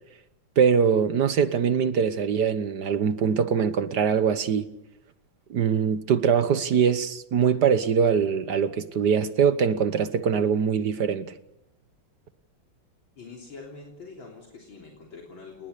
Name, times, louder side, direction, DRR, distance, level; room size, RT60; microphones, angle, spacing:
voice 1, 0.6-4.7 5.5-11.3, right 6 dB, 55° right, 1.5 m, -23 dB
voice 2, 13.2-15.7, left 4 dB, 65° left, 4.2 m, -44 dB
28.5 x 20.5 x 6.7 m
omnidirectional pair, 2.3 m